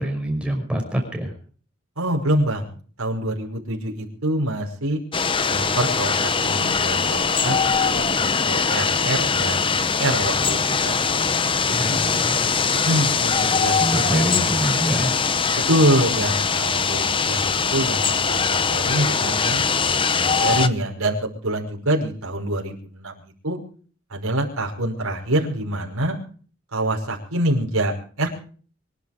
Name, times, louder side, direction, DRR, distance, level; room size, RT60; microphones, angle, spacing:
voice 1, 0.0-1.3 11.7-12.5 13.8-15.2, right 1 dB, 5° right, 2 dB, 5.8 m, -25 dB
voice 2, 2.0-5.0 5.5-7.6 7.9-11.0 11.7-12.0 12.9-14.2 15.5-19.6 20.1-23.6 24.1-26.2 26.7-28.3, right 1 dB, 90° right, -1 dB, 5.7 m, -25 dB
sound 1, 5.1-20.7, left 5 dB, 25° left, 0.8 m, -22 dB
25.0 x 11.5 x 5.1 m, 0.43 s
head